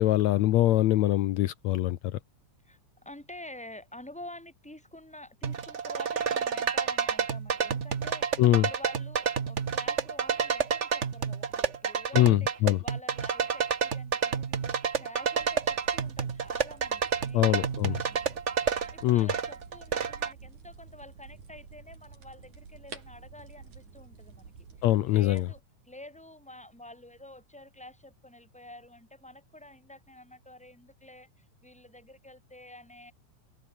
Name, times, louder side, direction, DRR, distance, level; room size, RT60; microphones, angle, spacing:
voice 1, 0.0-2.2 8.4-8.7 12.1-12.8 17.3-18.0 19.0-19.3 24.8-25.5, left 14 dB, 75° left, 2.1 m, -23 dB
voice 2, 2.6-24.5 24.8-25.6 25.9-33.1, left 1 dB, ahead, 4.1 m, -49 dB
sound 1, 5.4-20.3, right 6 dB, 70° right, 0.6 m, -30 dB
sound 2, 15.4-25.6, right 5 dB, 85° right, 6.1 m, -50 dB
open air
omnidirectional pair, 3.4 m